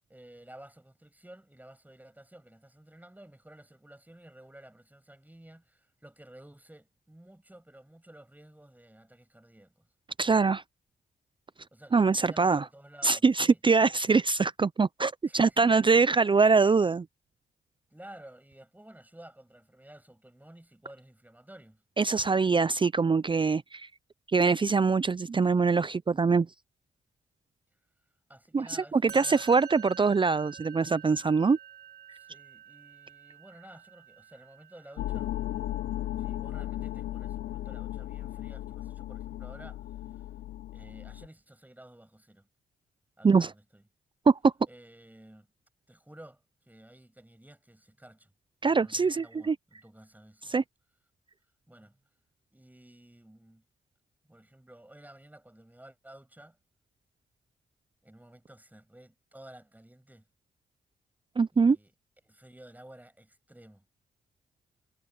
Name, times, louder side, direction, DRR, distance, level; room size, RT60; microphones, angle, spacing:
voice 1, 0.1-9.9 11.7-13.9 15.3-15.9 17.9-21.8 28.3-29.5 32.1-35.3 36.2-40.2 40.7-42.5 43.2-43.8 44.7-45.5 45.9-48.3 48.7-50.6 51.7-52.0 52.5-53.6 54.2-56.6 58.0-60.3 61.5-61.9 62.2-63.8, right 1 dB, 10° right, 6.7 m, -53 dB
voice 2, 10.2-10.6 11.9-12.6 13.0-17.1 22.0-23.9 24.3-26.5 28.5-31.6 43.2-43.5 44.3-44.5 48.6-49.6 50.5-50.6 61.4-61.8, right 4 dB, 25° right, 0.5 m, -23 dB
Musical instrument, 29.1-36.4, right 9 dB, 60° right, 4.2 m, -49 dB
sound 1, 35.0-41.3, left 14 dB, 75° left, 0.5 m, -36 dB
cardioid pair, 60°, 18 cm